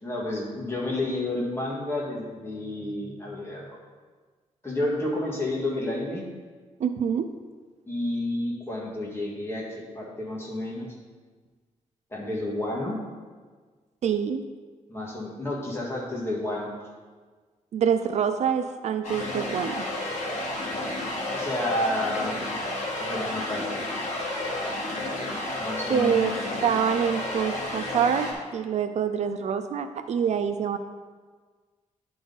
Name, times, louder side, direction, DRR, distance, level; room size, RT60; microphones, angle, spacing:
voice 1, 0.0-3.8 4.6-6.2 7.9-10.9 12.1-13.0 14.9-16.7 21.3-22.4 23.0-23.8 25.6-26.3, left 1 dB, 20° left, -4 dB, 1.7 m, -30 dB
voice 2, 6.8-7.3 14.0-14.4 17.7-19.8 25.9-26.3 26.6-30.8, right 7 dB, 60° right, 9 dB, 0.4 m, -26 dB
sound 1, 19.0-28.3, left 1 dB, 65° left, 1.7 m, -31 dB
11.0 x 3.8 x 3.9 m, 1.5 s
cardioid pair, 120°, 13 cm